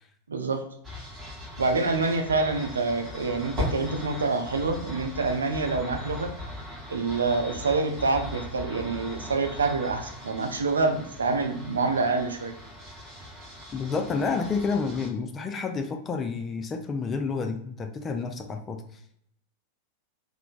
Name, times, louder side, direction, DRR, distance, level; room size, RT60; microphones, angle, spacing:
voice 1, 0.3-0.6 1.6-6.3 6.9-12.5, right 3 dB, 70° right, 5 dB, 0.4 m, -26 dB
sound 1, 0.8-15.1, left 1 dB, 15° right, 0.9 m, -39 dB
voice 2, 13.7-18.8, left 4 dB, 25° left, 6 dB, 0.3 m, -29 dB
3.0 x 2.0 x 2.4 m, 0.69 s
figure-of-eight pair, 90°, 0 cm